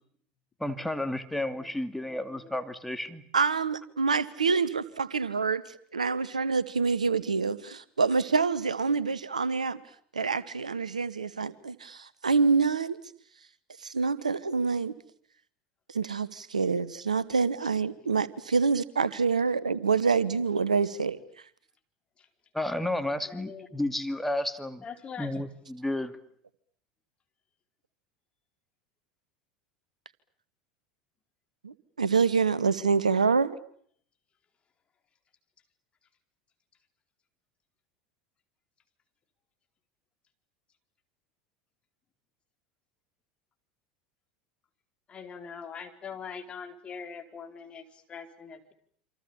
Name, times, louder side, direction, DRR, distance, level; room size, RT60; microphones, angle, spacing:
voice 1, 0.6-3.2 22.5-24.8 25.2-26.1, left 1 dB, 5° left, 8 dB, 2.4 m, -32 dB
voice 2, 2.0-2.6 22.2-22.3 23.2-23.7 24.8-25.4 45.1-48.7, left 6 dB, 30° left, 5 dB, 4.4 m, -43 dB
voice 3, 3.3-9.8 10.1-13.0 13.8-14.9 15.9-21.2 31.6-33.5, right 5 dB, 85° right, 17 dB, 1.2 m, -26 dB
28.0 x 26.0 x 7.2 m, 0.62 s
figure-of-eight pair, 80°, 4 cm